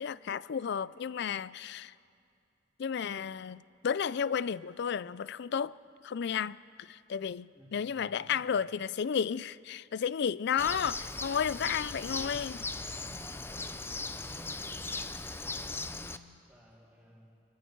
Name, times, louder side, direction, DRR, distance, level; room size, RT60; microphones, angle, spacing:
voice 1, 0.0-1.9 2.8-5.7 6.0-12.6, left 7 dB, 60° left, 0.4 m, -33 dB
voice 2, 7.5-8.6 10.6-11.2 11.9-12.4 12.9-16.1 16.5-17.3, equal, 10° right, 3.6 m, -55 dB
Bird, 10.6-16.2, left 3 dB, 10° left, 0.6 m, -38 dB
26.0 x 25.0 x 4.6 m
head